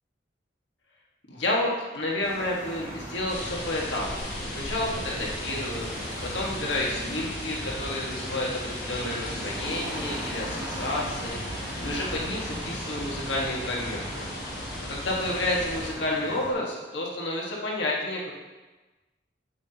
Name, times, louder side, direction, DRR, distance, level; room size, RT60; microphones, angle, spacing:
voice 1, 1.3-5.9 6.2-14.3 14.9-18.3, left 1 dB, 80° left, -3 dB, 1.7 m, -30 dB
sound 1, 2.2-16.5, equal, 20° right, 2.8 m, -39 dB
sound 2, 3.3-15.9, left 1 dB, 55° left, 2.9 m, -37 dB
9.5 x 8.3 x 2.9 m, 1.2 s
head